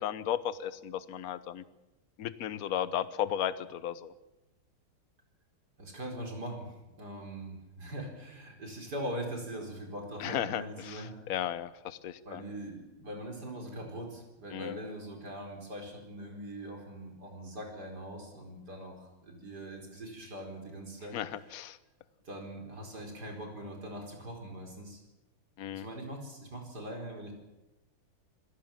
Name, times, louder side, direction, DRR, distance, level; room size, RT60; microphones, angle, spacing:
voice 1, 0.0-1.6 2.2-4.1 10.2-11.0 11.3-12.4 14.5-14.8 21.1-21.8 25.6-25.9, left 10 dB, 55° left, 15 dB, 1.1 m, -35 dB
voice 2, 5.8-6.7 7.0-11.2 12.2-21.4 22.2-25.0 25.7-27.3, right 1 dB, 45° right, 2 dB, 5.1 m, -42 dB
25.5 x 17.5 x 7.3 m, 1.0 s
omnidirectional pair, 2.4 m